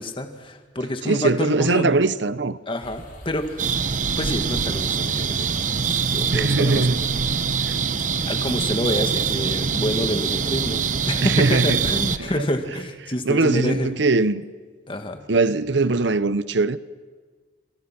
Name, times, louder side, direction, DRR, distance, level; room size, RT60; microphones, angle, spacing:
voice 1, 0.0-1.9 2.7-3.8 4.2-5.5 5.8-6.9 8.3-13.9 14.9-15.2, left 1 dB, 30° left, 2.1 m, -27 dB
voice 2, 1.1-2.6 6.3-7.0 7.6-7.7 11.2-11.8 12.2-12.3 13.3-14.4 15.3-16.8, right 3 dB, 70° right, 0.9 m, -21 dB
sound 1, 2.8-12.2, left 1 dB, 45° left, 7.2 m, -43 dB
sound 2, 3.6-12.2, right 6 dB, 45° right, 0.9 m, -24 dB
28.5 x 27.0 x 6.1 m
head